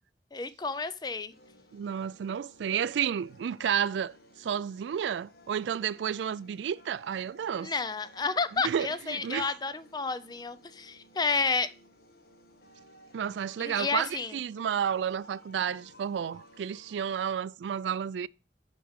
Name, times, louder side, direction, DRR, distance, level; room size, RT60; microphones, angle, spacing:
voice 1, 0.3-1.3 7.6-11.7 13.6-14.3, left 4 dB, 25° left, 0.4 m, -31 dB
sound 1, 1.3-17.2, equal, 60° left, 1.4 m, -57 dB
voice 2, 1.7-7.7 8.6-9.5 13.1-18.3, right 8 dB, 85° right, 0.3 m, -31 dB
6.7 x 5.0 x 6.3 m
head